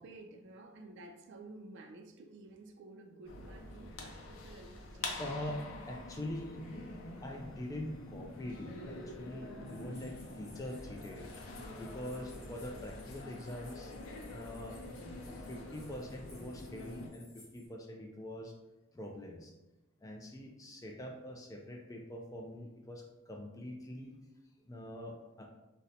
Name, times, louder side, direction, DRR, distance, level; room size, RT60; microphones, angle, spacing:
voice 1, 0.0-5.4, right 2 dB, 60° right, 4 dB, 0.4 m, -52 dB
sound 1, 3.2-17.1, left 2 dB, 85° left, 0.5 m, -46 dB
voice 2, 5.2-5.6 5.9-6.6 7.2-13.9 14.3-14.8 15.3-18.5 18.9-19.5 20.0-24.2 24.6-25.5, left 1 dB, 15° left, 1 dB, 0.3 m, -44 dB
sound 2, 9.6-17.7, left 3 dB, 55° left, 1.0 m, -61 dB
3.8 x 2.1 x 2.7 m, 1.0 s
head